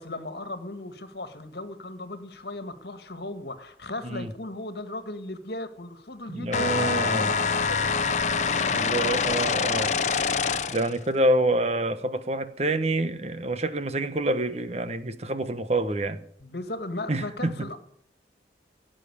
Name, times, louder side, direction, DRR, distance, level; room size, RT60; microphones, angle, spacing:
voice 1, 0.0-8.1 16.4-17.8, left 2 dB, 65° left, 1.9 m, -37 dB
voice 2, 6.3-7.3 8.7-9.9 10.7-16.2 17.1-17.8, right 1 dB, 35° right, 1.0 m, -27 dB
sound 1, 6.5-10.9, left 5 dB, 40° left, 0.8 m, -25 dB
17.0 x 7.6 x 9.9 m
head